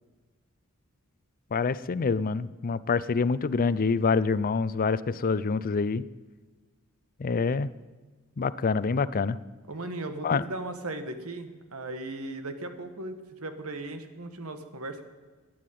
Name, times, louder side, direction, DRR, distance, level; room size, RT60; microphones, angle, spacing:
voice 1, 1.5-6.0 7.2-7.7 8.4-9.4 10.2-10.4, left 4 dB, 40° left, 17 dB, 0.5 m, -26 dB
voice 2, 9.7-15.1, right 2 dB, 80° right, 8 dB, 1.4 m, -37 dB
12.5 x 9.5 x 9.2 m, 1.3 s
head